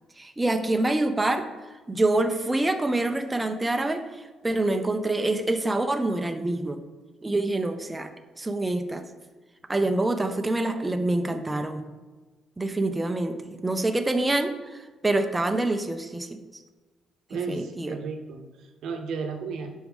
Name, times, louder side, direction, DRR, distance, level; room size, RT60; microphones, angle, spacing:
voice 1, 0.2-1.5 1.9-6.8 7.2-8.1 8.4-9.0 9.7-11.8 12.6-16.3 17.5-17.9, right 2 dB, 15° right, 6 dB, 0.5 m, -26 dB
voice 2, 17.3-19.8, right 5 dB, 80° right, 4 dB, 0.7 m, -34 dB
6.2 x 4.8 x 3.5 m, 1.2 s
cardioid pair, 90°, 0 cm